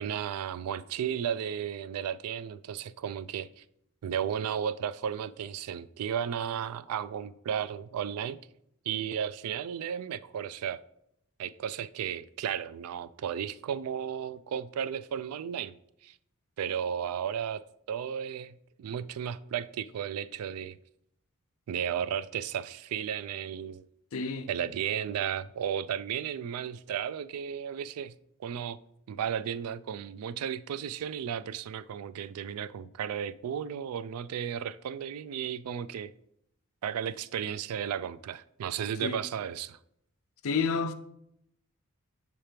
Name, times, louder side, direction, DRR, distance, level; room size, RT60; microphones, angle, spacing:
voice 1, 0.0-3.6 4.0-8.4 8.9-10.8 11.4-15.7 16.0-16.1 16.6-17.6 17.9-20.8 21.7-23.9 24.5-28.1 28.4-28.8 29.1-36.1 36.8-39.8, right 8 dB, 80° right, 0.3 m, -34 dB
voice 2, 24.1-24.5 39.0-39.2 40.4-40.9, left 5 dB, 65° left, 0.5 m, -29 dB
6.6 x 3.0 x 5.0 m
head